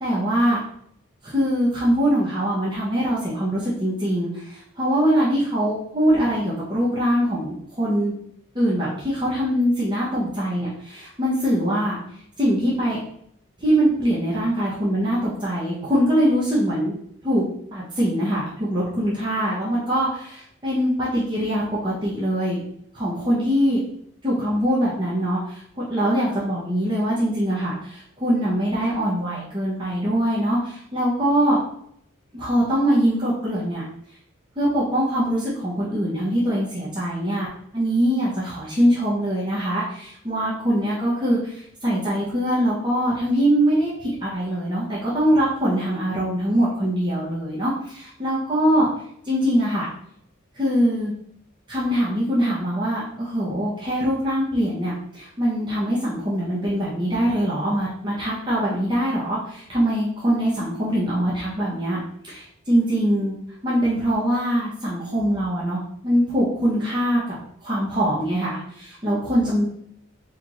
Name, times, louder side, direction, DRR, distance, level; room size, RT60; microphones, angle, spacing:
voice 1, 0.0-0.6 1.2-8.1 8.5-12.0 12.4-13.0 13.6-16.9 17.2-17.4 17.7-22.6 22.9-23.8 24.2-31.6 32.3-33.8 34.6-37.5 37.7-48.9 49.2-49.9 50.5-51.1 51.7-62.0 62.3-63.4 63.6-67.4 67.6-69.7, equal, 20° right, -8 dB, 0.8 m, -23 dB
4.4 x 3.0 x 2.4 m, 0.71 s
head